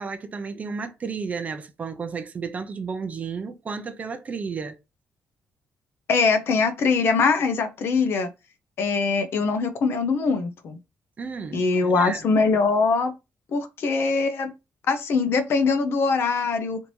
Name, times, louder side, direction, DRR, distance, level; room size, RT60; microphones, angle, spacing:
voice 1, 0.0-4.8 11.2-12.3, right 5 dB, 35° right, 0.5 m, -32 dB
voice 2, 6.1-8.3 8.8-10.8 11.5-13.1 13.5-14.5 14.9-16.8, left 4 dB, 65° left, 0.6 m, -22 dB
3.4 x 2.6 x 3.0 m
cardioid pair, 155°, 4 cm